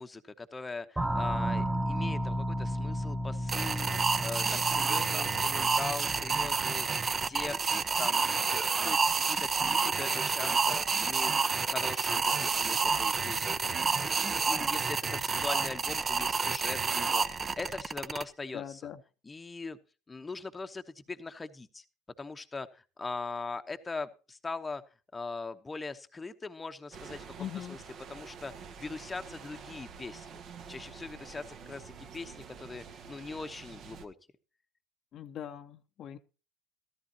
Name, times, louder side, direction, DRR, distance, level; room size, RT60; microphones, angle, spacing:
voice 1, 0.0-8.2 8.5-8.6 8.8-18.9 19.2-19.8 20.1-21.8 22.2-24.8 25.1-27.8 28.1-30.4 30.7-34.1, left 3 dB, 20° left, 8 dB, 0.9 m, -41 dB
sound 1, 1.0-7.3, equal, 10° right, 1.2 m, -34 dB
sound 2, 3.5-18.2, right 5 dB, 30° right, 0.8 m, -29 dB
voice 2, 18.5-19.0 27.4-27.8 35.1-36.2, left 10 dB, 50° left, 7 dB, 0.8 m, -41 dB
sound 3, 26.9-34.1, right 6 dB, 50° right, 1.3 m, -48 dB
14.0 x 13.5 x 2.9 m, 0.33 s
hypercardioid pair, 70°, 0 cm